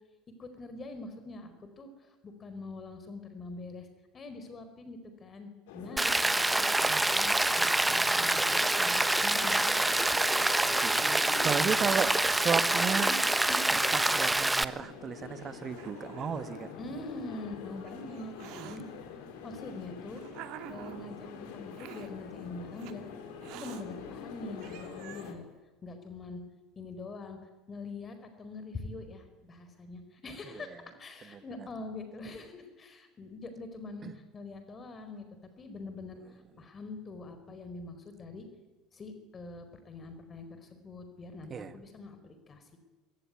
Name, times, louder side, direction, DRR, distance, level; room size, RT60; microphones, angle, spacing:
voice 1, 0.4-3.9 4.1-6.1 6.5-10.6 10.9-11.6 12.8-13.2 13.5-13.6 16.8-18.8 19.4-20.2 20.7-23.1 23.5-25.4 25.8-26.4 26.8-35.2 35.6-38.5 38.9-42.8, left 3 dB, 25° left, 8 dB, 4.7 m, -44 dB
sound 1, 5.7-25.4, left 6 dB, 60° left, 4.9 m, -45 dB
Rain, 6.0-14.6, right 2 dB, 10° right, 1.3 m, -26 dB
Hiss, 10.4-11.7 12.6-13.2 14.2-14.3 15.1-15.2 15.7-16.7 17.6-18.8 19.6-21.1 21.7-22.1 22.8-22.9 23.4-23.8 24.3-24.4 24.6-25.3, right 12 dB, 50° right, 2.3 m, -48 dB
voice 2, 10.8-13.1 13.7-16.7 18.6-18.8 30.4-30.8 31.2-31.7 34.0-34.1 36.6-36.7 37.5-37.6 41.5-41.8, right 6 dB, 30° right, 12 dB, 2.0 m, -34 dB
26.5 x 21.5 x 9.5 m, 1.2 s
figure-of-eight pair, 70°, 0 cm